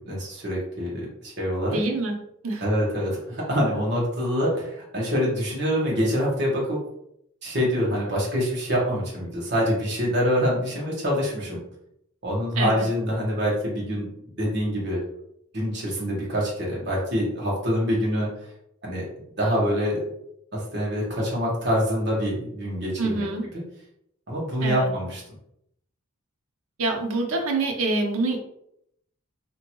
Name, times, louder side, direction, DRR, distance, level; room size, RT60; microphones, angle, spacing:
voice 1, 0.0-1.8 2.6-6.8 7.4-11.6 12.2-14.1 14.4-15.0 15.5-18.3 18.8-19.0 19.4-20.0 20.5-23.3 23.5-23.6 24.3-25.2, equal, 50° right, -4 dB, 1.2 m, -25 dB
voice 2, 1.7-2.6 12.6-12.9 23.0-23.4 24.6-24.9 26.8-28.4, right 3 dB, 80° right, 2 dB, 0.6 m, -26 dB
2.8 x 2.6 x 2.9 m, 0.75 s
head